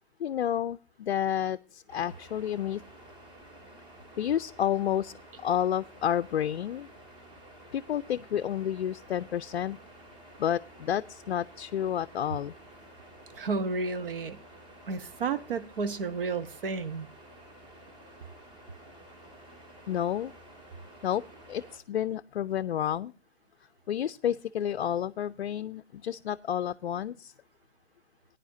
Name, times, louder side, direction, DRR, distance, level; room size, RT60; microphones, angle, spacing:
voice 1, 0.2-2.8 4.2-5.1 5.4-6.9 7.7-9.8 10.4-12.5 19.9-20.3 21.0-21.2 21.5-23.1 23.9-27.3, left 10 dB, 65° left, 0.5 m, -30 dB
sound 1, 1.9-21.8, right 1 dB, 30° right, 2.6 m, -52 dB
voice 2, 13.4-14.4 14.9-17.1, right 4 dB, 55° right, 1.0 m, -32 dB
18.5 x 10.0 x 2.7 m
hypercardioid pair, 150°, 33 cm